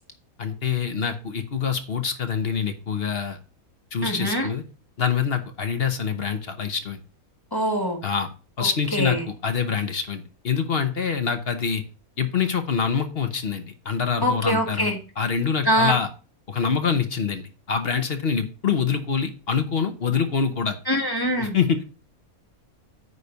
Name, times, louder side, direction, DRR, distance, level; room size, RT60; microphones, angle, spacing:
voice 1, 0.4-3.4 3.9-4.6 5.0-7.0 8.0-8.3 8.6-11.8 12.2-16.1 16.5-20.8 21.4-21.8, left 6 dB, 45° left, 8 dB, 1.0 m, -25 dB
voice 2, 4.0-4.5 7.5-8.0 8.6-9.2 14.2-15.0 15.6-15.9 20.9-21.6, equal, 15° left, 2 dB, 1.6 m, -23 dB
9.5 x 3.2 x 6.7 m, 0.34 s
omnidirectional pair, 1.6 m